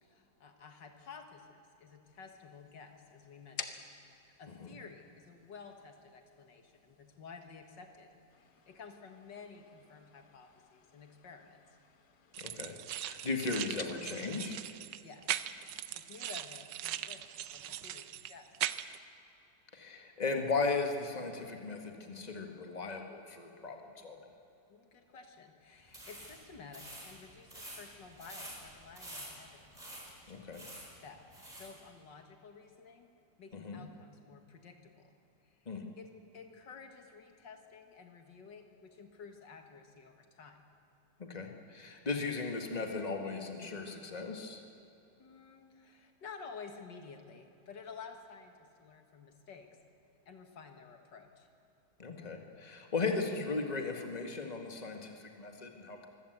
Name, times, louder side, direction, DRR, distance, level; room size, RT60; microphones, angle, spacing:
voice 1, 0.0-3.8 4.4-8.1 8.7-11.6 15.0-15.2 15.5-18.5 24.7-29.7 30.6-31.2 31.6-33.1 33.4-35.1 35.6-40.6 45.2-49.7 50.3-51.5, left 5 dB, 90° left, 5 dB, 2.4 m, -52 dB
sound 1, 2.0-16.4, left 6 dB, 70° left, 1.7 m, -54 dB
sound 2, 12.3-19.0, right 12 dB, 85° right, 1.4 m, -40 dB
voice 2, 12.4-14.6 19.7-23.8 24.0-24.2 30.3-30.6 33.5-33.8 35.7-35.8 41.2-44.6 52.0-56.1, left 4 dB, 25° left, 3 dB, 1.9 m, -37 dB
sound 3, 25.9-31.8, right 1 dB, 20° right, 4.5 m, -49 dB
24.5 x 16.0 x 8.1 m, 2.9 s
omnidirectional pair, 1.9 m